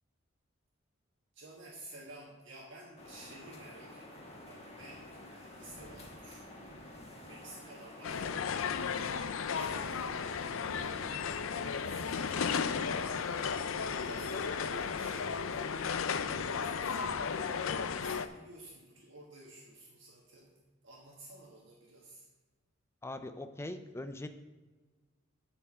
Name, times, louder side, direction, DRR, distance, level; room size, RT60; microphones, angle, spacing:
voice 1, 1.3-6.8 7.2-13.6 14.0-20.6 20.8-22.2, right 2 dB, 65° right, -3 dB, 1.4 m, -53 dB
sound 1, 3.0-18.1, left 1 dB, 30° left, 1.3 m, -50 dB
sound 2, 8.0-18.3, left 6 dB, 80° left, 0.5 m, -34 dB
voice 2, 23.0-24.3, left 1 dB, 15° left, 9 dB, 0.4 m, -41 dB
8.6 x 4.7 x 7.3 m, 1.3 s
head